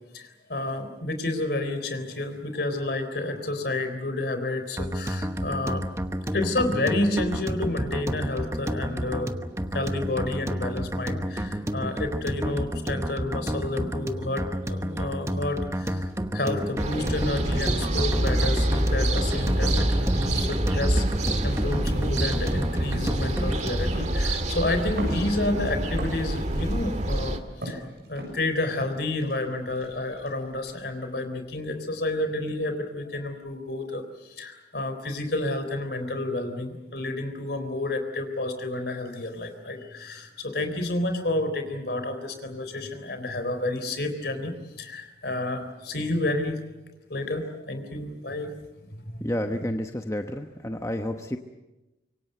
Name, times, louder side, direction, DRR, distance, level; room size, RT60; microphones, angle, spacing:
voice 1, 0.1-5.8 6.3-9.3 9.7-21.0 21.4-27.4 27.6-27.8 28.1-46.6 47.1-48.5 48.9-49.3, left 2 dB, 60° left, 8 dB, 3.8 m, -30 dB
sound 1, 4.8-24.0, equal, 15° right, 1.0 m, -31 dB
sound 2, 14.8-31.8, equal, 60° right, 8.0 m, -45 dB
sound 3, 16.8-27.4, right 1 dB, 40° right, 1.9 m, -26 dB
voice 2, 49.2-51.4, left 1 dB, 15° left, 5 dB, 1.0 m, -30 dB
25.5 x 23.5 x 7.8 m, 1.0 s
head